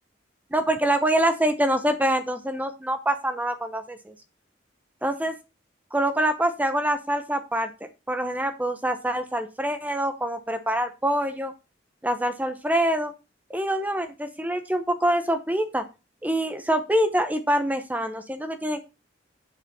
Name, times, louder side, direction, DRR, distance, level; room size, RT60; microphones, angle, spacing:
voice 1, 0.5-4.1 5.0-5.3 5.9-7.7 8.1-11.5 12.0-13.1 13.5-15.8 16.2-18.8, right 1 dB, 10° right, 8 dB, 0.7 m, -25 dB
7.2 x 6.7 x 4.1 m, 0.28 s
head